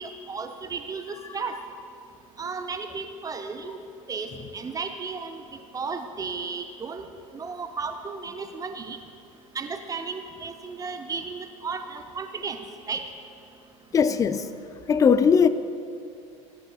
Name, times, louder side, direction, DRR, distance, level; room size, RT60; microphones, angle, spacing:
voice 1, 0.0-1.6 2.4-3.8 4.1-5.4 5.7-7.0 7.3-9.0 9.5-13.0, right 4 dB, 20° right, 0.7 m, -34 dB
voice 2, 13.9-14.5 14.9-15.5, left 6 dB, 20° left, 0.4 m, -19 dB
17.0 x 10.5 x 2.3 m
figure-of-eight pair, 80°, 18 cm